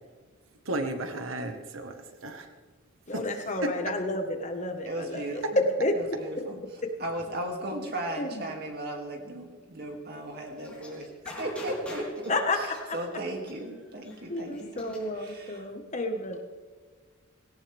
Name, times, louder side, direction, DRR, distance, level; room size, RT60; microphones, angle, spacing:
voice 1, 0.6-2.5 3.1-3.7, right 2 dB, 80° right, 6 dB, 1.5 m, -34 dB
voice 2, 3.1-5.4 5.8-5.9 8.2-8.3 12.3-12.6 14.3-16.4, left 2 dB, 35° left, 4 dB, 1.5 m, -31 dB
voice 3, 4.8-15.8, right 1 dB, 50° right, 2 dB, 2.6 m, -37 dB
sound 1, 10.6-15.3, left 1 dB, 5° left, 3.9 m, -45 dB
18.0 x 17.5 x 3.6 m, 1.5 s
head